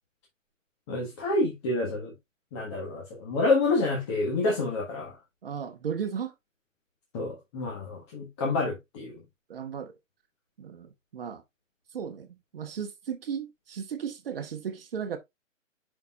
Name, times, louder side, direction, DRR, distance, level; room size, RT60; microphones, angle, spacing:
voice 1, 0.9-2.1 2.5-5.2 7.1-9.2, left 2 dB, 20° left, 1.4 m, -28 dB
voice 2, 5.4-6.3 9.5-9.9 10.6-11.4 11.9-15.2, right 7 dB, 45° right, 1.2 m, -35 dB
6.8 x 5.9 x 2.3 m
hypercardioid pair, 160°, 39 cm